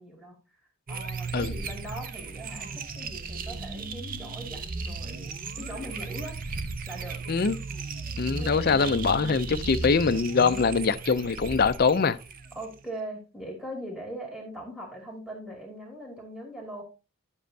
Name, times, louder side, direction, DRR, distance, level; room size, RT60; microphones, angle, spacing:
voice 1, 0.0-7.3 8.4-8.7 12.5-16.8, right 1 dB, 5° right, 2.3 m, -41 dB
sound 1, 0.9-12.8, right 4 dB, 40° right, 0.6 m, -36 dB
voice 2, 8.2-12.2, left 5 dB, 45° left, 0.4 m, -23 dB
10.0 x 7.2 x 2.7 m
head